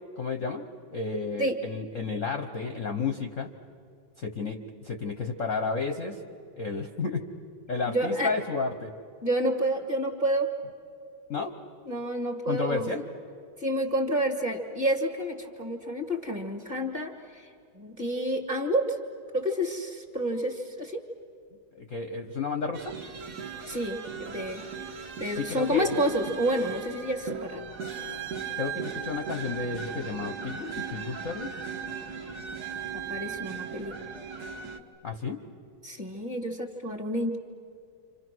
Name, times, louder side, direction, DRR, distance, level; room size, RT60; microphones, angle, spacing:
voice 1, 0.2-0.6 0.9-3.5 4.2-6.2 6.6-7.2 7.7-8.9 11.3-11.5 12.5-13.0 21.8-22.9 25.4-26.0 28.6-31.5 35.0-35.4, left 4 dB, 45° left, 5 dB, 1.1 m, -32 dB
voice 2, 7.8-8.3 9.2-10.5 11.9-12.9 13.6-17.5 17.7-19.0 19.3-21.0 23.7-24.7 25.2-27.6 33.1-34.0 35.8-37.4, equal, 20° right, 3 dB, 2.2 m, -29 dB
sound 1, 22.7-34.8, right 6 dB, 50° right, 1.8 m, -37 dB
29.5 x 26.5 x 6.2 m, 2.5 s
omnidirectional pair, 2.4 m